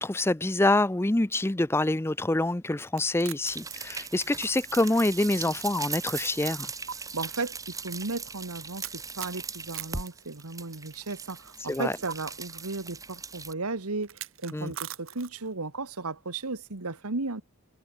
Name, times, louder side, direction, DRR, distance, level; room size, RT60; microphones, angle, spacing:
voice 1, 0.0-6.7 11.7-11.9 14.5-14.7, left 2 dB, 10° left, 0.5 m, -26 dB
sound 1, 2.9-5.6 5.9-6.0 6.9-7.0 8.8-10.9 12.1-12.2 14.0-15.5, right 10 dB, 65° right, 1.3 m, -41 dB
sound 2, 3.4-13.5, right 5 dB, 15° right, 3.1 m, -39 dB
voice 2, 7.1-17.4, right 3 dB, 85° right, 1.7 m, -35 dB
head